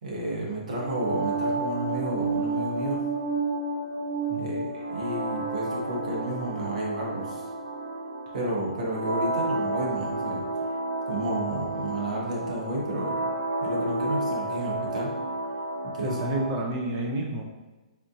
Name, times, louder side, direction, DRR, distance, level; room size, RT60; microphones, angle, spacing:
voice 1, 0.0-3.0 4.4-7.4 8.3-10.5 11.1-13.3 13.6-15.1 15.8-16.1, right 1 dB, 70° right, -3 dB, 1.2 m, -32 dB
sound 1, 0.7-16.6, right 2 dB, 90° right, 0.5 m, -31 dB
voice 2, 4.3-4.7 16.0-17.4, right 1 dB, 30° right, 1 dB, 0.6 m, -30 dB
4.3 x 2.6 x 2.6 m, 1.2 s
hypercardioid pair, 145°, 4 cm